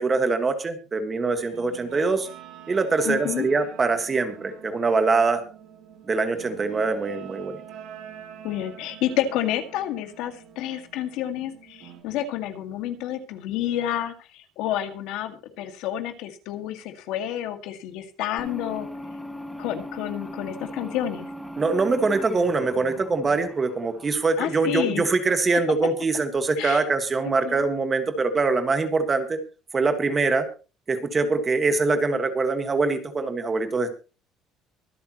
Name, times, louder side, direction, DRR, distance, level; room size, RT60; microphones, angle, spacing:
voice 1, 0.0-2.3 2.7-5.4 6.0-7.6 21.6-29.4 29.7-30.5 30.9-33.9, right 3 dB, 20° right, 8 dB, 1.7 m, -23 dB
Guitar, 1.4-12.0, right 8 dB, 65° right, 4.4 m, -45 dB
voice 2, 3.0-3.5 8.4-18.9 19.6-21.3 24.4-25.0 25.5-25.6 26.6-26.8 27.4-27.6, left 11 dB, 70° left, 8 dB, 2.0 m, -29 dB
sound 1, 18.4-24.8, equal, 5° left, 1.0 m, -39 dB
24.0 x 8.4 x 3.0 m, 0.33 s
cardioid pair, 180°, 0 cm